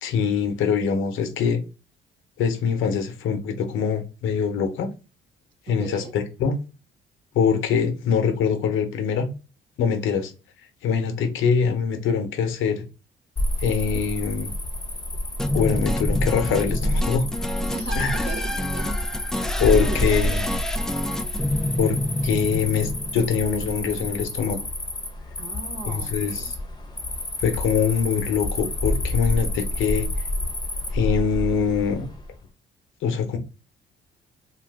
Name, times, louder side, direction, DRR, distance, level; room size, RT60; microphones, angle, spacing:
voice 1, 0.0-1.6 2.4-4.9 5.7-6.6 7.3-9.3 9.8-10.3 10.8-12.8 13.6-14.5 15.5-17.3 18.0-18.1 19.6-20.4 21.8-22.0 22.2-24.6 25.9-26.5 27.4-30.1 30.9-32.1 33.0-33.4, left 6 dB, 85° left, 0.8 m, -23 dB
voice 2, 5.7-6.1 17.7-19.0 19.6-20.5 25.4-26.5, right 4 dB, 60° right, 1.1 m, -36 dB
Cricket, 13.4-32.3, left 1 dB, 20° left, 0.8 m, -28 dB
sound 1, 15.4-23.6, left 1 dB, 5° left, 0.3 m, -29 dB
2.6 x 2.4 x 3.5 m
cardioid pair, 90°, 20 cm